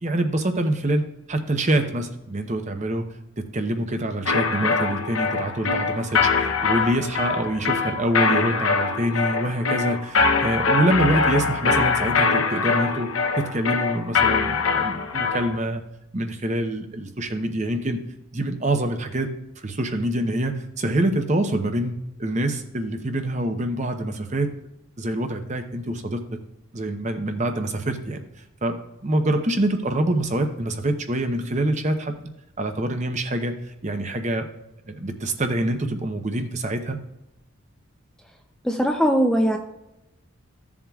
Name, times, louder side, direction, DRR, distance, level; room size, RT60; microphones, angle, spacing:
voice 1, 0.0-3.0 3.4-13.1 13.4-15.8 16.1-18.0 18.3-19.3 19.6-21.9 22.2-24.5 25.0-26.2 26.7-28.2 28.6-28.8 29.0-32.1 32.6-33.5 33.8-34.5 34.9-37.0, right 1 dB, 35° right, 6 dB, 0.8 m, -25 dB
sound 1, 4.3-15.6, left 4 dB, 75° left, 0.8 m, -23 dB
voice 2, 38.6-39.6, equal, 5° left, 2 dB, 0.5 m, -20 dB
14.5 x 7.3 x 2.4 m, 0.89 s
head